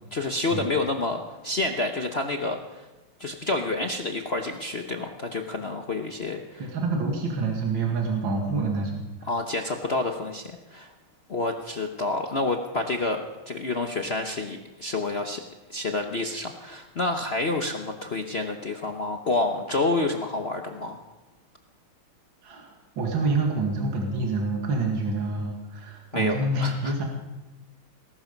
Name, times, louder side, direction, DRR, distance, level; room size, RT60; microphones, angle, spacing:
voice 1, 0.1-2.9 3.2-6.7 9.3-10.4 10.7-10.9 11.3-13.2 13.5-15.4 15.7-21.0 26.1-26.9, left 2 dB, 45° left, 4 dB, 0.8 m, -28 dB
voice 2, 6.6-9.0 22.4-27.0, right 3 dB, 65° right, 0 dB, 2.7 m, -27 dB
19.5 x 12.0 x 5.3 m, 1.1 s
omnidirectional pair, 2.4 m